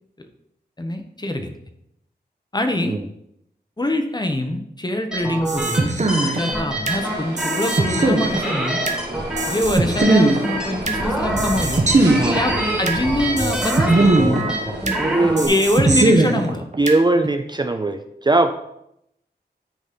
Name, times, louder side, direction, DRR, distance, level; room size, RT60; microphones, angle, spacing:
voice 1, 0.8-1.5 2.5-3.0 3.8-5.9 6.2-8.8 9.5-11.8 12.2-14.4 15.5-16.6, left 1 dB, 25° left, 6 dB, 1.1 m, -24 dB
sound 1, 5.1-15.5, right 1 dB, 5° right, 2.1 m, -26 dB
sound 2, 5.5-7.0 7.4-9.0 9.4-11.0 11.4-13.0 13.4-15.0 15.4-17.0, right 2 dB, 45° right, 1.1 m, -19 dB
sound 3, 6.9-15.9, right 2 dB, 80° right, 1.8 m, -31 dB
voice 2, 15.0-15.5 16.8-18.5, right 2 dB, 25° right, 7 dB, 0.5 m, -19 dB
10.0 x 4.2 x 5.2 m, 0.78 s
wide cardioid pair, 90°, 17 cm